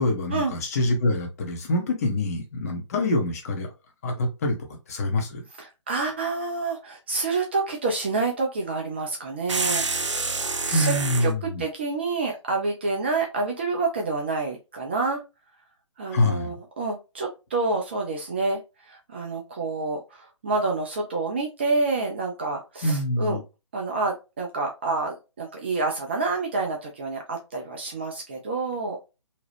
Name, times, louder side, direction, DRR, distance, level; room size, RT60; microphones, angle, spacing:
voice 1, 0.0-3.7 4.0-4.6 4.9-5.4 10.7-11.6 16.1-16.6 22.8-23.4, left 2 dB, 30° left, 0.8 m, -25 dB
voice 2, 5.6-9.9 10.6-10.9 11.2-15.2 16.0-23.4 23.7-29.0, right 3 dB, 20° right, 0.4 m, -28 dB
sound 1, 9.5-11.3, right 3 dB, 70° right, 0.6 m, -27 dB
2.8 x 2.3 x 3.2 m
figure-of-eight pair, 140°, 16 cm